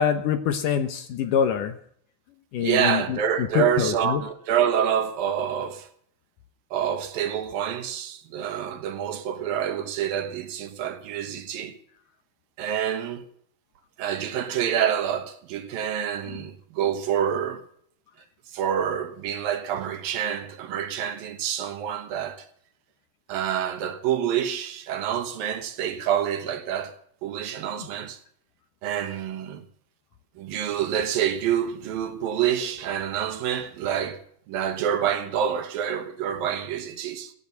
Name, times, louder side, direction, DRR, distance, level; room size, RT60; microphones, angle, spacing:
voice 1, 0.0-1.7 2.5-3.2 3.5-4.2, left 8 dB, 65° left, 2.3 m, -24 dB
voice 2, 2.6-5.9 6.7-11.8 12.6-13.2 14.0-17.6 18.5-22.5 23.3-26.9 27.2-28.2 28.8-29.6 30.4-34.2 34.5-37.3, right 9 dB, 70° right, 2.9 m, -27 dB
17.5 x 12.5 x 5.8 m
omnidirectional pair, 4.5 m